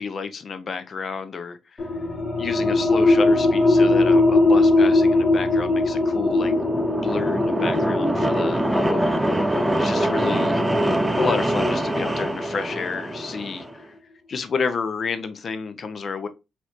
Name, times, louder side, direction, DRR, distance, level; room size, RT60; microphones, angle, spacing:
voice 1, 0.0-1.9 2.4-6.5 7.0-10.6 11.2-13.9 14.3-16.3, left 5 dB, 50° left, 0.7 m, -30 dB
sound 1, 1.8-13.0, left 2 dB, 30° left, 1.3 m, -21 dB
sound 2, 5.8-13.7, right 1 dB, 10° right, 0.5 m, -24 dB
4.2 x 3.0 x 3.0 m
supercardioid pair, 65°, 0 cm